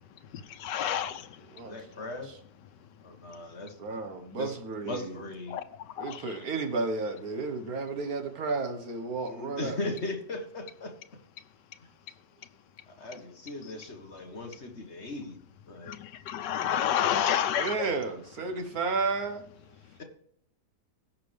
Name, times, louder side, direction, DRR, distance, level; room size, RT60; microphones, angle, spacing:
voice 1, 0.6-1.3 5.5-5.6 6.0-6.2 15.9-17.7, left 9 dB, 90° left, 1.4 m, -29 dB
voice 2, 1.6-2.3 3.0-4.0 4.3-4.5 4.8-5.6 9.2-10.9 12.9-15.4 15.7-16.0 20.0-20.1, left 2 dB, 40° left, 1.7 m, -38 dB
voice 3, 3.8-5.1 6.0-10.0 17.5-19.5, right 4 dB, 60° right, 1.8 m, -32 dB
15.5 x 5.9 x 3.4 m
omnidirectional pair, 1.8 m